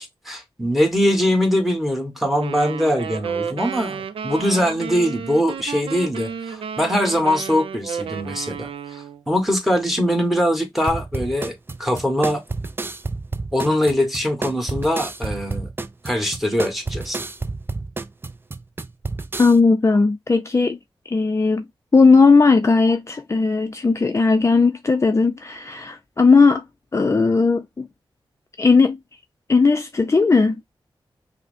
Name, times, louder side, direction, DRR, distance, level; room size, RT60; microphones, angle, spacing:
voice 1, 0.0-11.5 11.8-12.4 13.5-15.7 16.0-17.2, equal, ahead, 1.4 m, -22 dB
sound 1, 2.4-9.2, right 7 dB, 90° right, 0.5 m, -32 dB
sound 2, 10.9-19.6, right 3 dB, 25° right, 0.4 m, -30 dB
voice 2, 19.4-20.8 21.1-21.6 21.9-26.6 26.9-27.9 28.6-29.0 29.5-30.7, left 4 dB, 30° left, 0.5 m, -17 dB
5.5 x 2.1 x 2.6 m
cardioid pair, 65°, 9 cm